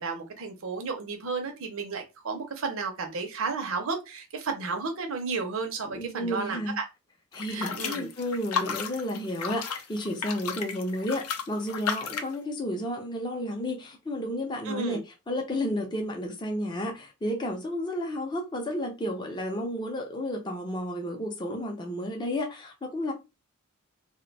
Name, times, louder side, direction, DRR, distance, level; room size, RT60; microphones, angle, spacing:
voice 1, 0.0-6.9 7.5-8.1 14.6-15.0, right 4 dB, 65° right, 0.6 m, -33 dB
voice 2, 5.9-6.8 7.3-15.0 15.3-23.1, left 1 dB, 20° left, 0.5 m, -32 dB
sound 1, 7.3-12.4, left 6 dB, 85° left, 0.5 m, -33 dB
2.5 x 2.1 x 3.9 m
head